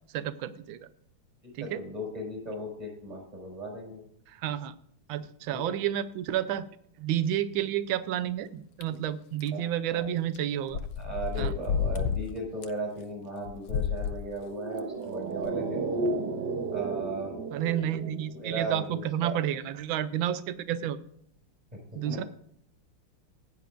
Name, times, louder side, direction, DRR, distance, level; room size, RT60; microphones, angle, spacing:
voice 1, 0.1-0.9 1.5-1.8 4.3-4.7 5.1-6.7 7.0-10.9 11.4-11.5 17.5-21.0 21.9-22.2, right 11 dB, 75° right, 13 dB, 1.4 m, -30 dB
voice 2, 1.6-4.0 5.5-5.7 9.5-10.1 11.0-15.8 16.7-17.4 18.3-19.4 22.0-22.3, right 2 dB, 15° right, -1 dB, 5.7 m, -37 dB
sound 1, 8.8-8.9 9.4-9.5 10.4-10.5 10.7-12.2 12.6-12.7 13.5-14.2 14.8-14.9 15.5-15.6, left 7 dB, 80° left, 1.4 m, -30 dB
sound 2, 14.3-18.9 19.2-19.3, right 3 dB, 55° right, 1.6 m, -33 dB
15.5 x 10.0 x 2.5 m, 0.67 s
omnidirectional pair, 2.3 m